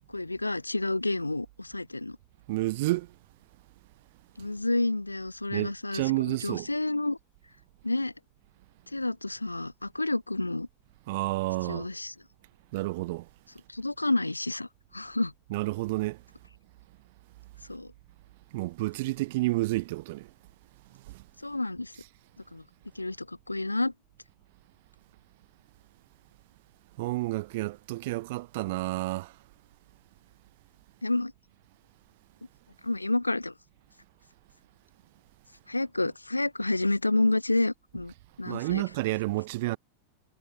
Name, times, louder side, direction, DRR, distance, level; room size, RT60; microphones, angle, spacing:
voice 1, 0.1-2.2 4.4-7.2 7.8-8.1 8.9-10.7 11.7-12.1 13.7-15.3 17.7-17.9 21.4-21.9 22.5-22.6 23.0-23.9 31.0-31.3 32.8-33.5 35.7-38.8, left 2 dB, 85° left, 0.4 m, -29 dB
voice 2, 2.5-3.1 5.5-6.7 11.1-11.9 12.7-13.3 15.5-16.2 18.5-20.3 21.1-21.2 27.0-29.3 38.5-39.8, right 20 dB, 50° right, 0.6 m, -30 dB
figure-of-eight pair, 90°, 0 cm